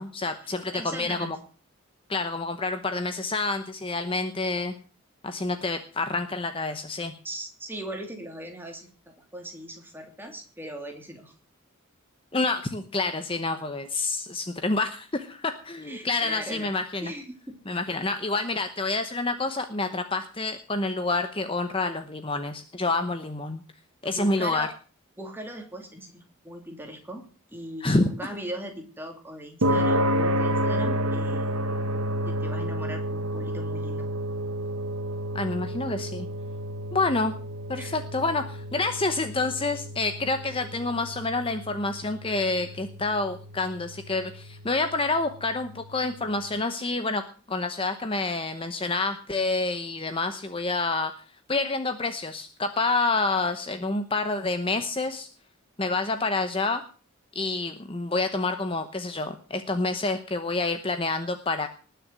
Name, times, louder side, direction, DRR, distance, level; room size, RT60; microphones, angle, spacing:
voice 1, 0.0-1.4 2.1-4.7 5.2-7.1 12.3-17.1 17.7-23.6 24.0-24.7 27.8-28.1 35.3-36.3 36.9-37.4 37.7-51.1 51.5-55.3 55.8-56.8 57.3-61.7, left 3 dB, 25° left, 9 dB, 0.9 m, -28 dB
voice 2, 0.7-1.4 7.2-11.3 15.8-16.7 17.0-17.6 24.0-24.7 25.2-27.2 27.5-31.5 32.3-34.1 37.8-38.0, right 1 dB, 10° right, 3 dB, 2.7 m, -39 dB
sound 1, 29.6-46.1, equal, 80° right, 1.2 m, -30 dB
19.5 x 6.8 x 7.5 m, 0.39 s
head